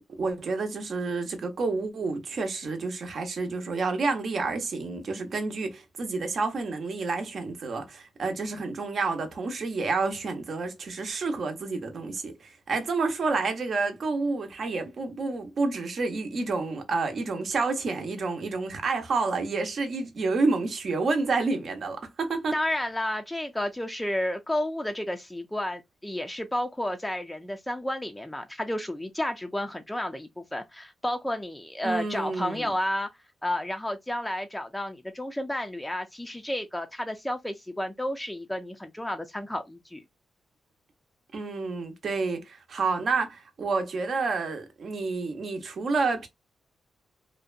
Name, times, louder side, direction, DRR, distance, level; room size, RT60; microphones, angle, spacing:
voice 1, 0.0-22.6 31.8-32.7 41.3-46.3, right 3 dB, 60° right, 0.7 m, -29 dB
voice 2, 22.5-33.1 33.4-40.0, left 1 dB, 10° left, 0.4 m, -31 dB
2.6 x 2.1 x 2.4 m
cardioid pair, 80°, 0 cm